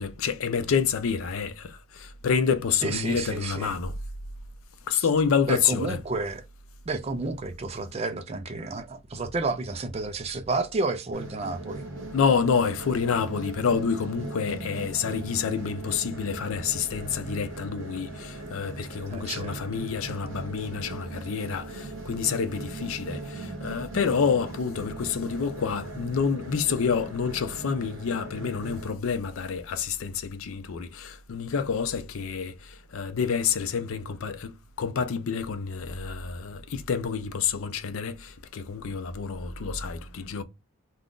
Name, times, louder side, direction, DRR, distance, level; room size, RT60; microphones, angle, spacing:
voice 1, 0.0-3.9 4.9-6.0 12.1-40.4, left 6 dB, 70° left, 0.4 m, -28 dB
voice 2, 2.7-3.8 4.9-5.1 5.5-6.4 6.9-11.9 19.1-19.8, right 3 dB, 30° right, 0.4 m, -31 dB
sound 1, 11.1-28.9, right 2 dB, 65° right, 0.9 m, -39 dB
2.5 x 2.3 x 3.5 m
head